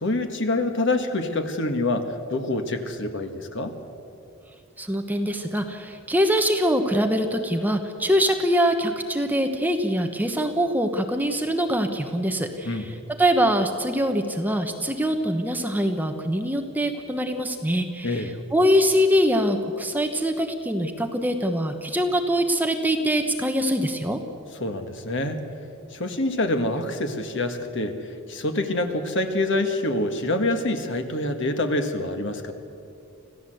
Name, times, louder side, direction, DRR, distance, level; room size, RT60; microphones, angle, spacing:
voice 1, 0.0-3.7 12.7-12.9 18.0-18.3 24.6-25.4 25.9-32.5, left 2 dB, 55° left, 6 dB, 1.8 m, -26 dB
voice 2, 4.8-24.2, equal, 10° right, 5 dB, 1.1 m, -23 dB
26.0 x 15.5 x 7.9 m, 2.6 s
head